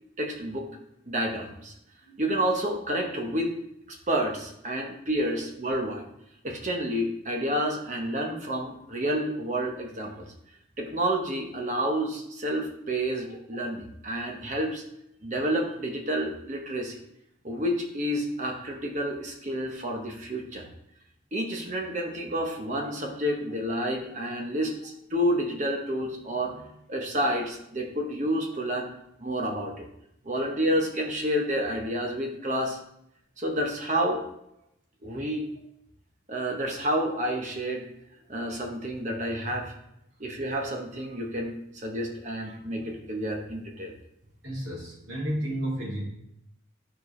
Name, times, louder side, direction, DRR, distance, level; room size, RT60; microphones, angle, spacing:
voice 1, 0.2-0.7 1.1-1.7 2.2-3.5 3.9-6.0 6.4-10.2 10.8-14.8 15.2-17.0 17.4-20.7 21.3-28.9 29.2-29.8 30.2-32.8 33.4-34.2 35.0-35.5 36.3-37.9 38.3-39.7 40.2-43.9, equal, 40° right, 2 dB, 1.0 m, -29 dB
voice 2, 44.4-46.0, equal, 85° right, -4 dB, 2.9 m, -32 dB
12.0 x 4.6 x 3.2 m, 0.76 s
head